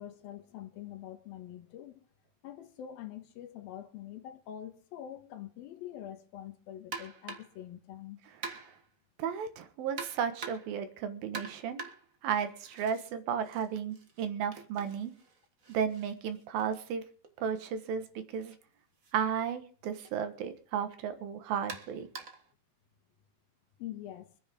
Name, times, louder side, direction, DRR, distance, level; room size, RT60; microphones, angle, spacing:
voice 1, 0.0-2.1 2.4-8.2 23.8-24.3, left 11 dB, 80° left, 3.1 m, -45 dB
sound 1, 6.9-7.6 8.4-8.9 10.0-10.8 11.3-13.1 13.4-17.3 18.4-18.6 19.0-19.1 20.0-20.2 21.7-22.5, right 4 dB, 60° right, 0.8 m, -45 dB
voice 2, 9.2-11.8 12.2-15.1 15.7-17.0 17.4-18.5 19.1-22.1, right 7 dB, 75° right, 3.1 m, -34 dB
24.5 x 9.6 x 3.6 m
omnidirectional pair, 4.3 m